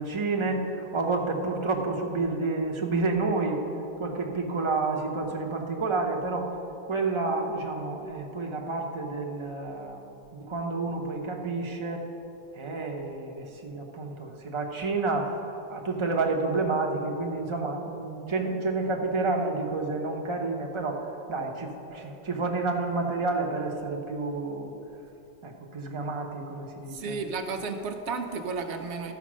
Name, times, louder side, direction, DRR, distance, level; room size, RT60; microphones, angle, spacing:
voice 1, 0.0-3.6 4.0-6.5 6.8-12.0 12.5-15.3 15.7-24.7 25.4-27.2, right 3 dB, 30° right, 1 dB, 0.9 m, -30 dB
voice 2, 26.9-29.1, right 4 dB, 85° right, 5 dB, 1.0 m, -33 dB
13.0 x 5.2 x 6.2 m, 2.8 s
omnidirectional pair, 1.1 m